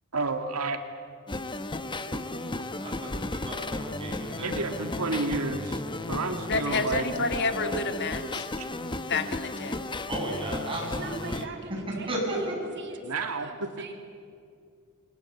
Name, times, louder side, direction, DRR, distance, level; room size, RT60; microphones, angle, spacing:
voice 1, 0.1-0.8 2.1-2.4 4.4-5.8 6.1-7.2 8.6-8.7 13.0-13.9, right 3 dB, 85° right, 6 dB, 1.9 m, -31 dB
sound 1, 1.3-11.4, left 2 dB, 20° left, 1.0 m, -34 dB
voice 2, 2.8-4.7 10.1-11.5 12.1-12.6, right 1 dB, 25° right, -1 dB, 7.8 m, -34 dB
voice 3, 6.5-8.5 9.1-9.9, left 3 dB, 55° left, 8 dB, 1.7 m, -29 dB
voice 4, 10.8-13.9, right 4 dB, 55° right, 3 dB, 2.8 m, -44 dB
28.0 x 22.5 x 8.5 m, 2.4 s
head